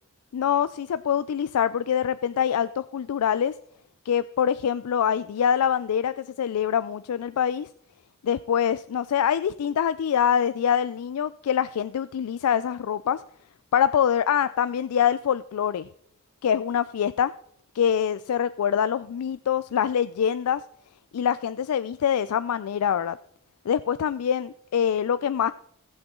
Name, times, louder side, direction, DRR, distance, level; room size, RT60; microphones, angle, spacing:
voice 1, 0.3-3.5 4.1-7.7 8.2-13.2 13.7-15.9 16.4-17.3 17.7-20.6 21.1-23.2 23.7-25.5, left 8 dB, 85° left, 14 dB, 0.4 m, -24 dB
18.0 x 7.8 x 3.7 m, 0.72 s
head